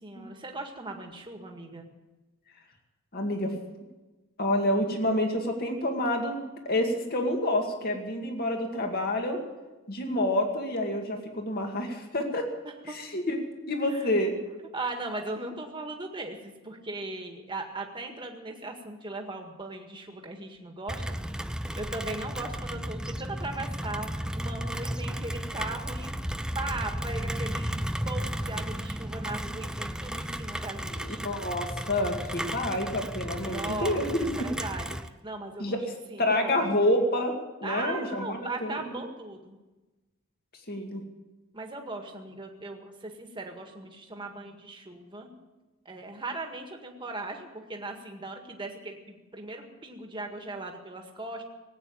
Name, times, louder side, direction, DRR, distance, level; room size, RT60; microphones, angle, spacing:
voice 1, 0.0-1.9 12.9-13.0 13.9-14.1 14.7-21.2 21.8-24.1 24.4-26.1 26.5-27.8 28.1-31.2 33.4-35.0 35.2-35.8 36.1-36.7 37.6-39.6 41.5-45.3 45.9-51.4, right 2 dB, 20° right, 3 dB, 1.8 m, -38 dB
voice 2, 3.1-3.5 4.4-6.4 6.6-9.4 9.9-12.4 12.8-14.3 30.9-34.5 35.6-35.8 36.2-37.3 37.6-39.0 40.7-41.0, left 1 dB, 45° left, 3 dB, 2.2 m, -28 dB
Rain, 20.9-35.1, equal, 5° right, 0.4 m, -34 dB
18.0 x 9.0 x 8.9 m, 1.1 s
head